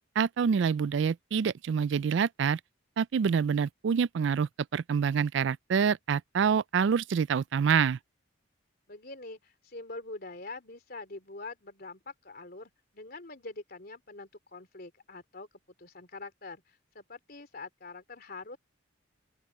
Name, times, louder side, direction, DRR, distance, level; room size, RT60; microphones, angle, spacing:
voice 1, 0.2-2.6 3.0-8.0, right 6 dB, 65° right, 0.3 m, -26 dB
voice 2, 8.9-15.5 15.8-18.6, left 3 dB, 50° left, 3.2 m, -44 dB
open air
head